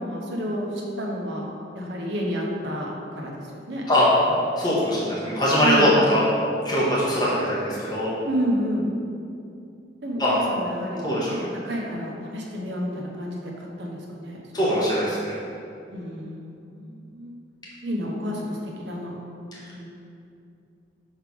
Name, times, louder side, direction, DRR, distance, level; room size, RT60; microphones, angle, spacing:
voice 1, 0.0-1.5 1.7-3.9 5.6-6.0 8.2-8.9 10.0-11.0 11.6-14.4 15.9-17.4 17.8-19.2 19.7-19.9, equal, 75° right, -2 dB, 1.1 m, -30 dB
voice 2, 4.6-6.2 6.6-8.1 10.2-10.3 11.0-11.3 14.5-15.4, equal, 20° left, -7 dB, 1.2 m, -21 dB
6.5 x 3.3 x 5.3 m, 2.6 s
head